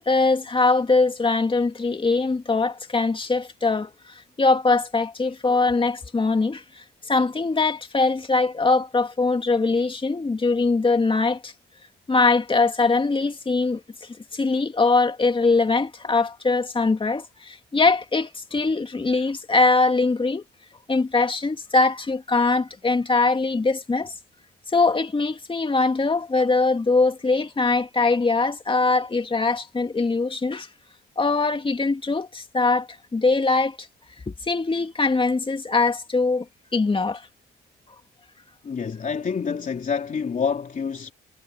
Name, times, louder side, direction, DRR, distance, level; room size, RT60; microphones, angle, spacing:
voice 1, 0.0-3.9 4.4-11.5 12.1-20.4 20.9-24.1 24.7-30.7 31.2-33.9 34.3-36.5 36.7-37.3, left 3 dB, 25° left, 2.5 m, -22 dB
voice 2, 38.6-41.1, left 6 dB, 40° left, 3.2 m, -27 dB
cardioid pair, 90°, 20 cm